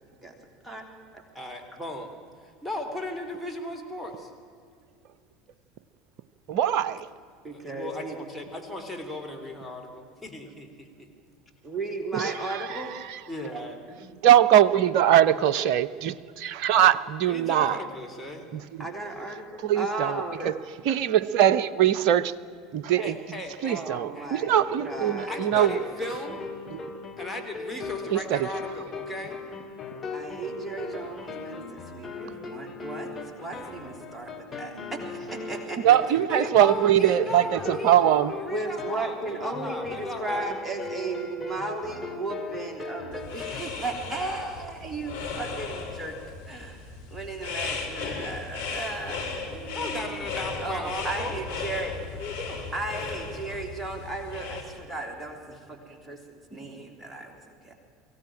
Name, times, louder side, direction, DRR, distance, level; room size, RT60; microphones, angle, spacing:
voice 1, 1.3-2.2 2.4-4.3 6.7-6.8 7.5-11.1 13.3-13.9 17.3-18.5 23.0-24.3 25.3-26.4 27.2-29.4 36.1-40.5 49.7-51.4 52.2-52.7, left 1 dB, 5° left, 2 dB, 3.6 m, -37 dB
voice 2, 6.5-7.1 12.1-13.2 14.2-17.8 18.5-18.6 19.6-20.5 20.9-22.3 22.7-23.1 23.6-25.8 26.7-26.8 28.1-28.5 35.8-38.3, right 11 dB, 55° right, 16 dB, 0.7 m, -22 dB
voice 3, 7.4-8.2 11.6-12.9 13.5-13.7 14.0-14.2 17.6-17.7 18.8-20.5 23.7-25.4 30.1-33.1 33.4-36.0 38.5-46.1 46.4-50.3 50.6-51.9 52.7-57.7, right 2 dB, 15° right, 3 dB, 3.3 m, -35 dB
sound 1, 24.4-43.6, left 3 dB, 20° left, 2.8 m, -38 dB
sound 2, 43.1-54.6, left 4 dB, 70° left, 3.4 m, -36 dB
23.0 x 16.0 x 8.9 m, 2.3 s
figure-of-eight pair, 70°, 0 cm